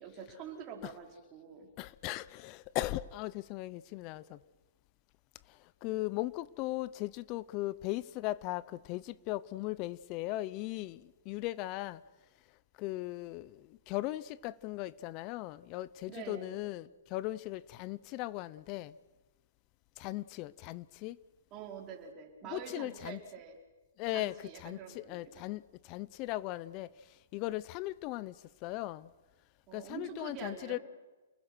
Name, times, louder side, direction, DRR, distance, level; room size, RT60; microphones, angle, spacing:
voice 1, 0.0-1.7 4.3-4.4 16.1-16.6 21.5-23.6 24.1-25.5 29.7-30.8, right 7 dB, 30° right, 4.8 m, -46 dB
voice 2, 1.8-4.4 5.8-12.0 12.8-19.0 20.0-21.2 22.4-23.2 24.0-26.9 27.3-28.3 28.6-29.1 29.7-30.8, left 17 dB, 30° left, 0.7 m, -38 dB
29.0 x 20.5 x 6.3 m
hypercardioid pair, 150°, 0 cm